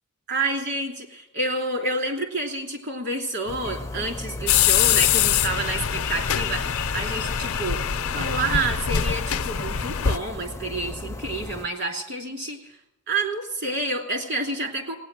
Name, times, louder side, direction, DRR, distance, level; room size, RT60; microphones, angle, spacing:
voice 1, 0.3-12.8 13.1-15.0, right 2 dB, 50° right, 2 dB, 2.8 m, -29 dB
sound 1, 3.5-11.7, left 2 dB, 15° left, 0.5 m, -36 dB
sound 2, 4.5-10.2, left 9 dB, 75° left, 0.6 m, -23 dB
17.5 x 9.4 x 7.5 m, 0.90 s
head